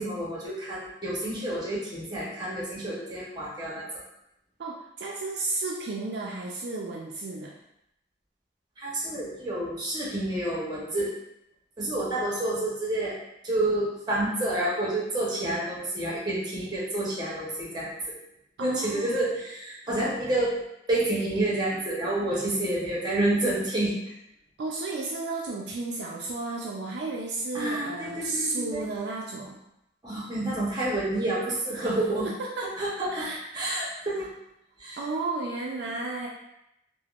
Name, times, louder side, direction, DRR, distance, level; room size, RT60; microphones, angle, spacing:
voice 1, 0.0-3.9 8.8-11.1 11.8-13.2 13.4-17.9 18.6-20.6 20.9-24.1 27.5-28.8 30.0-32.3 32.8-33.3 33.5-34.3 34.8-35.0, right 1 dB, 25° right, -5 dB, 0.7 m, -29 dB
voice 2, 4.6-7.6 18.6-19.2 24.6-29.6 31.8-32.0 32.2-32.7 33.1-33.8 35.0-36.3, right 3 dB, 60° right, -2 dB, 0.3 m, -33 dB
3.4 x 2.0 x 2.3 m, 0.83 s
head